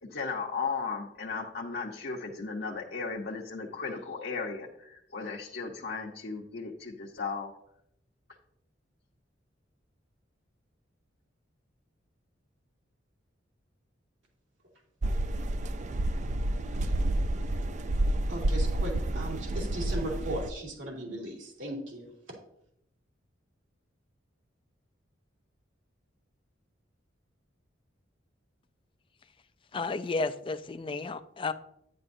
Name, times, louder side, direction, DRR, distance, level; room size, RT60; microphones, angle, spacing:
voice 1, 0.0-7.5, left 4 dB, 60° left, 1.0 m, -36 dB
sound 1, 15.0-20.5, right 1 dB, 40° right, 0.4 m, -29 dB
voice 2, 18.3-22.1, right 1 dB, 80° right, 2.7 m, -37 dB
voice 3, 29.7-31.5, left 3 dB, 25° left, 0.4 m, -32 dB
9.8 x 9.6 x 2.6 m
head